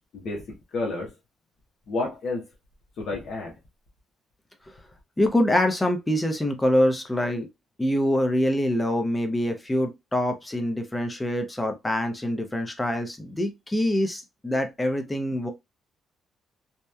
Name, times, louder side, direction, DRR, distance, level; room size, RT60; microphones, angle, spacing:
voice 1, 0.1-1.1 1.9-2.4 3.0-3.6, left 3 dB, 65° left, 0.7 m, -30 dB
voice 2, 5.2-7.5 7.8-15.5, left 1 dB, 15° left, 0.6 m, -25 dB
2.8 x 2.1 x 2.2 m
cardioid pair, 90°, 0 cm